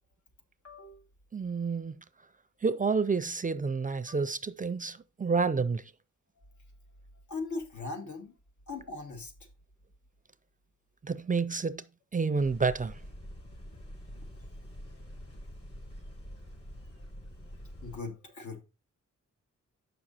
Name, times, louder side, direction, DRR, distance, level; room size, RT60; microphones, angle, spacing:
voice 1, 0.6-1.1 4.1-4.2 7.3-8.3 8.7-9.3 13.7-13.8 14.3-15.1 16.3-16.4 17.4-17.5 17.8-18.6, left 3 dB, 75° left, 2.2 m, -40 dB
voice 2, 1.3-2.0 2.6-5.9 11.0-11.8 12.1-13.0, right 4 dB, 30° right, 0.4 m, -29 dB
sound 1, 12.4-18.0, equal, 50° left, 4.2 m, -46 dB
8.2 x 6.1 x 4.2 m
wide cardioid pair, 160°, 29 cm